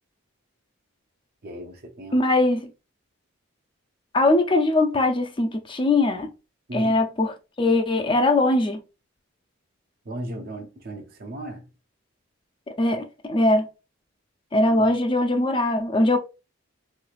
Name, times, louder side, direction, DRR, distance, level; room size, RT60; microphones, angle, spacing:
voice 1, 1.4-2.2 6.7-7.0 10.1-11.6 14.6-14.9, right 1 dB, 45° right, 0.6 m, -36 dB
voice 2, 2.1-2.7 4.1-6.3 6.7-8.8 12.8-13.7 14.5-16.2, left 2 dB, 25° left, 0.4 m, -21 dB
3.7 x 3.1 x 2.4 m
head